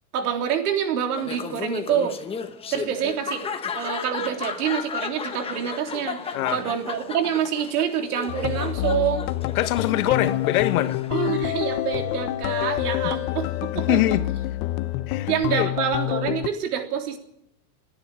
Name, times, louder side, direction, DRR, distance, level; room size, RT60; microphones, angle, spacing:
voice 1, 0.1-2.2 2.7-3.4 3.7-9.3 11.1-14.2 15.3-17.2, right 8 dB, 80° right, 3.6 m, -26 dB
Laughter, 1.2-11.5, left 6 dB, 10° left, 1.1 m, -34 dB
sound 1, 8.3-16.5, left 15 dB, 35° left, 0.7 m, -27 dB
voice 2, 9.5-11.0 13.9-14.3 15.1-15.7, left 14 dB, 70° left, 1.5 m, -23 dB
29.5 x 10.5 x 8.6 m
supercardioid pair, 155°, 46 cm